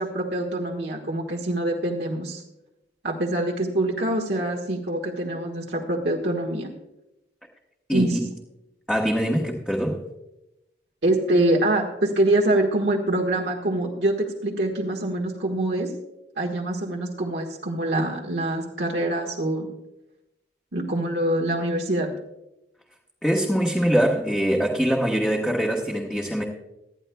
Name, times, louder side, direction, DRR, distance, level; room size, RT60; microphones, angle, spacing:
voice 1, 0.0-2.4 3.0-6.7 7.9-8.2 11.0-15.9 16.4-19.7 20.7-22.1, right 1 dB, 70° right, -1 dB, 1.5 m, -25 dB
voice 2, 7.9-8.2 8.9-10.0 23.2-26.4, equal, 5° left, -2 dB, 1.1 m, -23 dB
19.0 x 13.0 x 2.3 m, 0.91 s
head